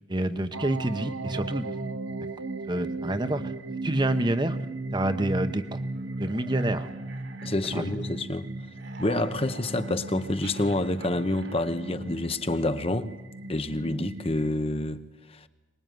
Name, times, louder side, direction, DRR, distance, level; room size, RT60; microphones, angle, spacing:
voice 1, 0.1-1.7 2.7-4.6 4.9-5.8 6.2-6.9 7.7-7.8, right 1 dB, 25° right, 1.0 m, -28 dB
sound 1, 0.5-14.5, right 2 dB, 85° right, 1.1 m, -36 dB
Darklords laugh, 4.8-8.3 8.6-12.7, right 3 dB, 65° right, 2.6 m, -48 dB
voice 2, 7.4-8.5 9.0-13.1 13.5-15.0 15.3-15.5, left 1 dB, 30° left, 0.9 m, -28 dB
23.5 x 20.0 x 9.3 m
head